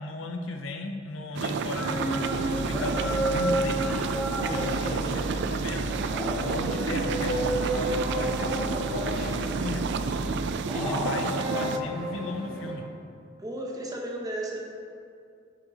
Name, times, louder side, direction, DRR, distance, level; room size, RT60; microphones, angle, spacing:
voice 1, 0.0-3.8 4.5-5.9 6.3-9.9 10.7-12.9, left 2 dB, 70° left, 4 dB, 0.6 m, -35 dB
sound 1, 1.4-11.8, right 5 dB, 60° right, 0.3 m, -31 dB
sound 2, 1.6-12.7, right 1 dB, ahead, 1.8 m, -32 dB
sound 3, 2.2-10.5, right 1 dB, 85° right, 0.9 m, -35 dB
voice 2, 4.7-5.6 13.4-14.7, right 1 dB, 20° right, 0 dB, 0.8 m, -36 dB
8.8 x 7.2 x 2.8 m, 2.4 s
head